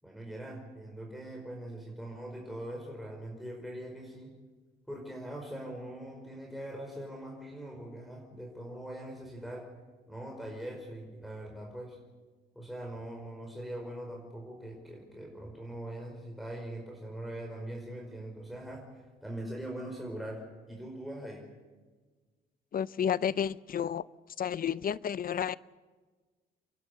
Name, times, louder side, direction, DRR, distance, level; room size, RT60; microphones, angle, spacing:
voice 1, 0.0-4.3 4.9-9.7 10.1-12.0 12.5-21.5, right 1 dB, ahead, -1 dB, 5.1 m, -42 dB
voice 2, 22.7-24.0 24.4-25.6, left 8 dB, 45° left, 19 dB, 0.6 m, -31 dB
29.5 x 11.5 x 8.4 m, 1.3 s
cardioid pair, 90°, 20 cm